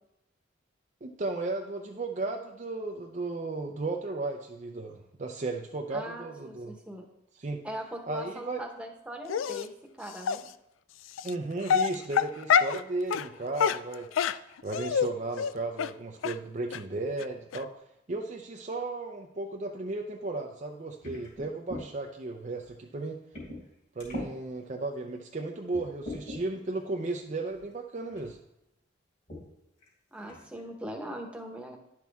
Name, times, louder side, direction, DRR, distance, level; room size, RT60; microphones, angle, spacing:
voice 1, 1.0-6.8 7.3-7.6 8.1-8.6 11.2-14.1 14.6-23.2 24.0-28.4, right 2 dB, 35° right, 2 dB, 0.5 m, -35 dB
voice 2, 5.9-7.0 7.6-9.7 10.0-10.4 30.1-31.8, right 1 dB, 5° right, 1 dB, 1.1 m, -40 dB
Dog, 9.3-9.7 10.3-10.4 11.2-11.3 11.7-12.8 13.1-13.3 13.6-15.1 15.4-15.5 15.8-15.9 16.2-16.3 16.7-16.8 17.2-17.3 17.5-17.6, left 7 dB, 80° left, 0.3 m, -26 dB
sound 1, 21.0-21.9 22.6-22.7 23.3-23.7 24.0-24.3 25.0-25.1 25.7-26.4 27.5-27.6 28.1-28.3 29.3-29.5 29.8-29.9 30.2-30.6, left 1 dB, 45° left, 3.6 m, -40 dB
10.5 x 6.0 x 3.5 m, 0.85 s
head